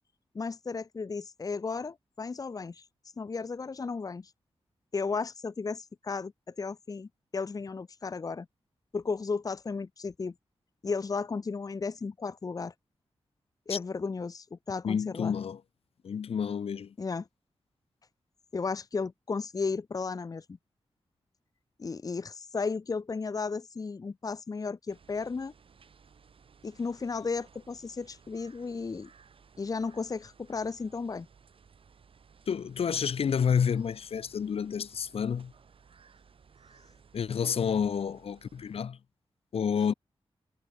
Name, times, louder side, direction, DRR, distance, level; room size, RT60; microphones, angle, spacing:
voice 1, 0.3-2.8 3.2-4.3 4.9-8.5 8.9-10.3 10.8-12.7 13.7-15.3 17.0-17.3 18.5-20.4 21.8-25.5 26.6-29.1 29.6-31.3, left 4 dB, 40° left, 0.9 m, -34 dB
voice 2, 14.8-15.6 16.0-16.9 32.5-35.5 37.1-39.0 39.5-39.9, left 7 dB, 80° left, 1.4 m, -29 dB
sound 1, 24.9-38.8, right 6 dB, 65° right, 4.3 m, -59 dB
wide cardioid pair, 115°, 10 cm